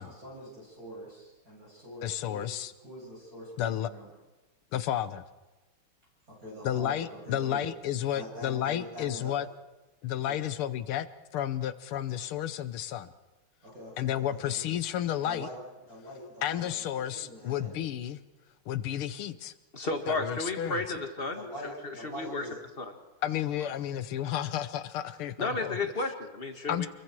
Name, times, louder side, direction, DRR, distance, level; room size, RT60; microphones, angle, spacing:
voice 1, 0.0-2.5 2.8-4.1 6.3-7.7 8.1-9.3 10.3-10.5 13.6-14.6 15.2-15.6 15.9-17.8 21.3-22.6, equal, 40° right, -5 dB, 8.6 m, -44 dB
voice 2, 2.0-2.7 3.6-3.9 4.7-5.2 6.6-9.5 10.0-11.1 11.3-13.1 14.0-15.5 16.4-18.2 18.7-19.5 20.1-20.8 23.2-25.9 26.7-26.9, left 11 dB, 80° left, 13 dB, 1.8 m, -32 dB
voice 3, 19.7-21.5 21.8-22.4 22.8-22.9 23.6-23.7 25.4-26.9, left 3 dB, 25° left, 5 dB, 2.1 m, -33 dB
28.5 x 22.5 x 4.7 m, 1.1 s
omnidirectional pair, 2.4 m